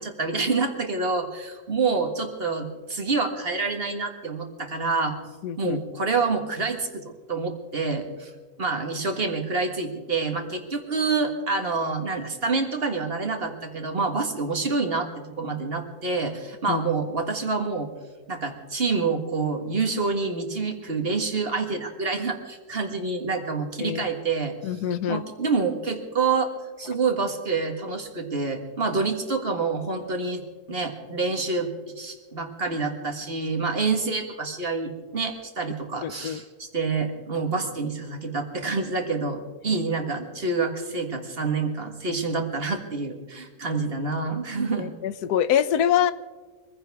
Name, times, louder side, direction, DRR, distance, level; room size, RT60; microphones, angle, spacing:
voice 1, 0.0-5.2 5.6-8.3 8.6-17.9 18.3-24.8 25.1-26.5 26.8-30.4 30.7-31.7 32.0-44.9, right 4 dB, 40° right, 4 dB, 1.8 m, -27 dB
voice 2, 5.4-5.8 16.7-16.8 23.8-24.1 24.6-25.2 36.0-36.4 39.7-39.8 44.8-46.1, left 10 dB, 85° left, 14 dB, 1.2 m, -25 dB
24.5 x 15.5 x 3.5 m, 1.4 s
omnidirectional pair, 1.6 m